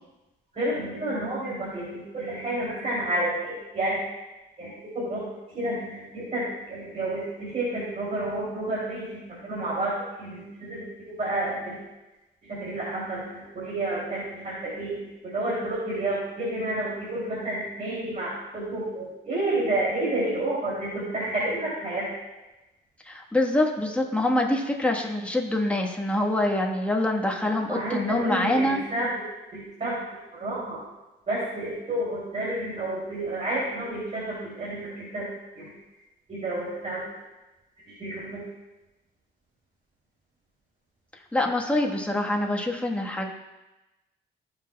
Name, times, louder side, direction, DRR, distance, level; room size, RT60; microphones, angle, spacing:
voice 1, 0.5-4.0 4.6-5.2 5.5-11.8 12.4-22.1 27.7-29.1 29.5-29.9 30.3-30.8 31.3-35.3 35.6-35.7 36.3-37.0 37.9-38.5, right 1 dB, 35° right, -6 dB, 2.8 m, -30 dB
voice 2, 23.0-28.8 41.3-43.3, left 1 dB, 5° left, 0 dB, 1.3 m, -25 dB
16.5 x 5.8 x 2.2 m, 1.0 s
cardioid pair, 90°, 20 cm